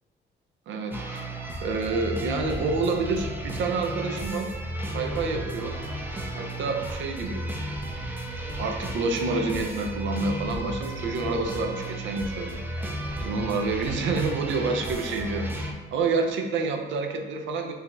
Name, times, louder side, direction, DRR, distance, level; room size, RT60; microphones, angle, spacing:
voice 1, 0.7-1.4 1.6-4.5 4.9-5.8 6.3-7.4 8.6-12.5 12.8-12.9 13.2-17.7, right 3 dB, 75° right, 4 dB, 0.5 m, -28 dB
sound 1, 0.9-15.7, right 1 dB, 10° right, 0.4 m, -33 dB
3.6 x 2.8 x 2.4 m, 1.2 s
cardioid pair, 90°, 20 cm